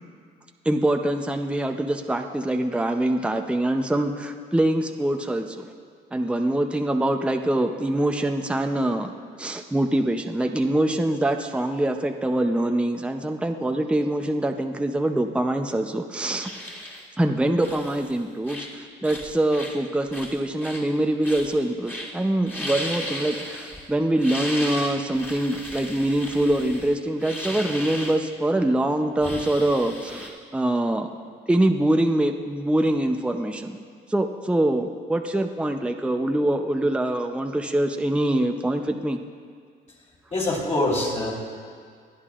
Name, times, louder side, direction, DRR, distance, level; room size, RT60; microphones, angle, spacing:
voice 1, 0.7-5.7 6.1-9.1 9.4-16.5 17.2-31.1 31.5-33.8 34.1-39.2, right 1 dB, 5° right, 4 dB, 0.6 m, -24 dB
sound 1, 16.4-17.0 17.6-18.1 18.4-18.7 19.0-19.7 20.1-20.8 21.2-21.6 21.8-22.1 22.4-23.9 24.2-28.2 29.2-30.3, left 1 dB, 10° left, 2.1 m, -35 dB
voice 2, 40.3-41.3, left 2 dB, 35° left, -3 dB, 3.2 m, -24 dB
21.5 x 9.5 x 2.5 m, 2.1 s
cardioid pair, 90°, 20 cm